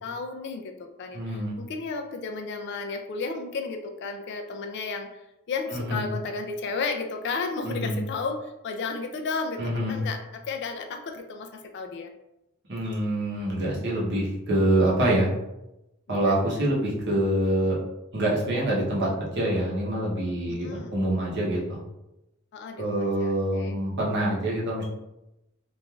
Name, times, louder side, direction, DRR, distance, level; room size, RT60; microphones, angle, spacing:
voice 1, 0.0-5.2 5.5-12.1 16.1-16.4 20.5-20.9 22.5-23.7, left 4 dB, 55° left, 5 dB, 0.3 m, -33 dB
voice 2, 1.1-1.5 5.7-6.0 7.7-8.0 9.6-10.0 12.7-15.3 16.1-17.8 18.1-21.8 22.8-24.8, right 1 dB, 55° right, -5 dB, 0.8 m, -26 dB
3.1 x 2.4 x 2.3 m, 0.91 s
head